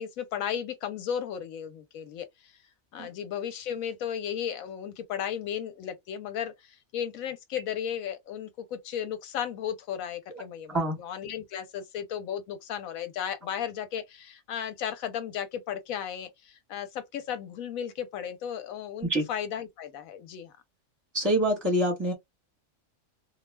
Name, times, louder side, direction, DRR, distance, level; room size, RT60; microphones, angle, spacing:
voice 1, 0.0-2.3 2.9-20.5, left 9 dB, 85° left, 1.1 m, -35 dB
voice 2, 21.1-22.1, right 1 dB, 15° right, 1.1 m, -25 dB
2.3 x 2.3 x 3.2 m
omnidirectional pair, 1.4 m